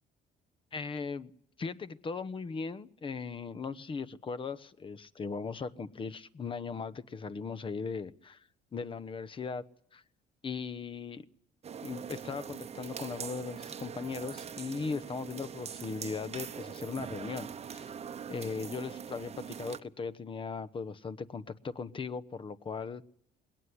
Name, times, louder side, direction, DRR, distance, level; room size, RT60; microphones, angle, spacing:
voice 1, 0.7-1.3 1.6-8.4 8.7-9.6 9.9-10.0 10.4-11.2 11.8-18.0 18.3-23.0, left 5 dB, 30° left, 15 dB, 1.0 m, -38 dB
sound 1, 11.6-19.8, right 7 dB, 40° right, 1.0 m, -42 dB
21.0 x 18.0 x 9.9 m, 0.70 s
cardioid pair, 110°, 17 cm